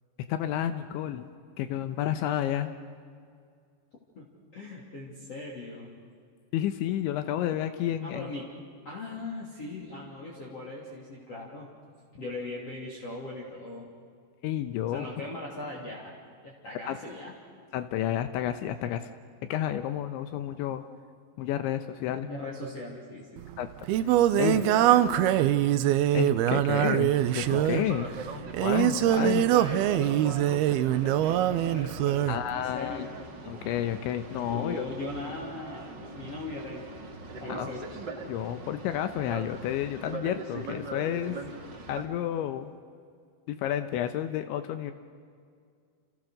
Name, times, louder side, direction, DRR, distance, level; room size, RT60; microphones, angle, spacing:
voice 1, 0.3-1.3 1.6-2.7 6.5-8.3 14.4-15.1 16.9-17.0 17.7-19.1 19.5-20.8 21.4-22.3 23.6-24.6 26.1-28.1 28.6-29.4 32.3-33.1 33.5-34.8 37.5-37.7 38.2-41.4 41.9-42.7 43.5-44.9, left 11 dB, 75° left, 9 dB, 3.1 m, -31 dB
voice 2, 4.2-5.9 8.0-8.5 8.9-11.7 12.1-13.9 14.9-16.2 16.4-17.3 22.2-23.4 24.3-25.6 29.1-33.1 34.4-36.9 37.4-38.0, left 2 dB, 35° left, -3 dB, 3.6 m, -39 dB
Singing, 23.4-32.4, right 12 dB, 90° right, 2.2 m, -24 dB
Boat Water vehicle, 27.1-42.0, right 3 dB, 40° right, 1.6 m, -41 dB
29.5 x 29.5 x 6.6 m, 2.2 s
omnidirectional pair, 5.6 m